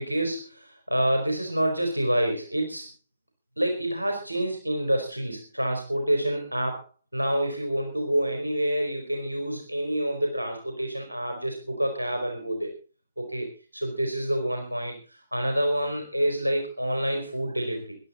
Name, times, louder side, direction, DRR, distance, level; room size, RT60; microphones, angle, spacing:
voice 1, 0.0-2.9 3.6-6.8 7.1-12.7 13.2-18.0, right 1 dB, 85° right, 3 dB, 4.0 m, -27 dB
20.5 x 12.0 x 4.2 m, 0.34 s
figure-of-eight pair, 125°, 0 cm